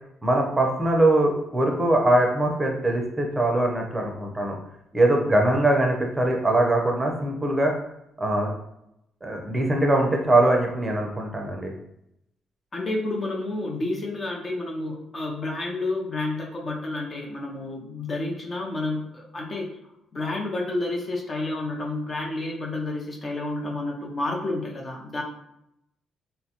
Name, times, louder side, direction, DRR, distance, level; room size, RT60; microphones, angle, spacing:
voice 1, 0.2-4.5 4.9-7.7 8.2-8.5 9.2-11.7, right 1 dB, 20° right, 1 dB, 0.6 m, -22 dB
voice 2, 12.7-19.8 20.1-25.2, left 2 dB, 35° left, 0 dB, 0.6 m, -30 dB
2.9 x 2.2 x 2.8 m, 0.80 s
cardioid pair, 90°, 0 cm